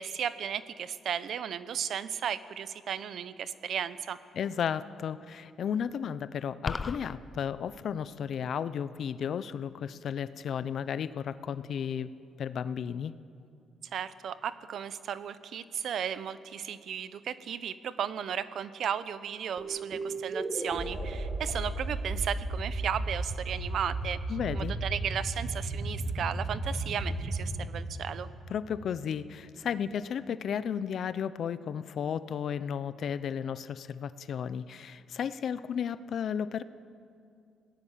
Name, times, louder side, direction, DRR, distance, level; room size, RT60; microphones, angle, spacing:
voice 1, 0.0-4.2 13.9-24.2 24.5-28.3, right 8 dB, 65° right, 14 dB, 0.9 m, -35 dB
voice 2, 4.3-12.1 12.4-13.2 24.3-24.8 28.5-36.6, left 8 dB, 60° left, 15 dB, 0.8 m, -34 dB
sound 1, 6.7-7.1, left 4 dB, 30° left, 0.7 m, -33 dB
sound 2, 19.6-28.9, right 2 dB, 30° right, 4.4 m, -35 dB
27.0 x 18.5 x 7.5 m, 2.5 s
cardioid pair, 90°, 0 cm